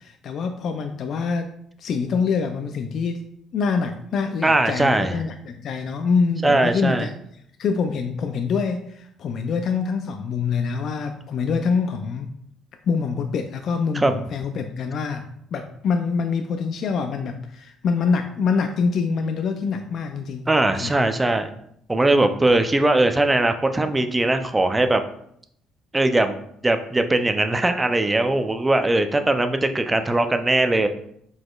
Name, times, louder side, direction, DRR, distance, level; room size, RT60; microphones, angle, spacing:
voice 1, 0.0-1.5 1.8-3.2 3.5-7.1 7.6-12.3 12.8-20.5 20.7-21.1, left 5 dB, 60° left, 6 dB, 0.4 m, -25 dB
voice 2, 4.4-5.1 6.4-7.1 13.9-14.1 20.5-21.5 21.9-25.0 25.9-26.4 26.6-30.9, right 2 dB, 15° right, 8 dB, 0.5 m, -20 dB
4.8 x 4.0 x 2.4 m, 0.70 s
cardioid pair, 90°, 0 cm